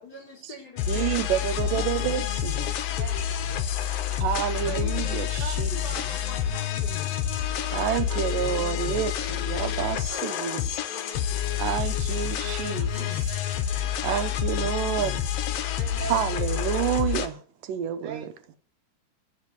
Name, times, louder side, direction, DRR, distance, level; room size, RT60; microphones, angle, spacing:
voice 1, 0.0-1.1 1.7-2.0 2.7-3.2 4.6-7.1 10.1-11.7, equal, 30° left, 3.6 m, -42 dB
sound 1, 0.8-17.3, left 10 dB, 70° left, 1.6 m, -28 dB
voice 2, 0.9-2.7 4.1-5.8 7.7-10.7 11.6-13.4 14.0-15.3 16.1-18.3, right 10 dB, 85° right, 2.5 m, -29 dB
voice 3, 2.8-4.2 4.5-4.7 7.2-8.7 10.8-11.6 12.3-14.1 15.1-15.2 15.6-16.5 17.7-18.6, right 5 dB, 65° right, 3.0 m, -46 dB
14.0 x 5.5 x 9.4 m
omnidirectional pair, 3.8 m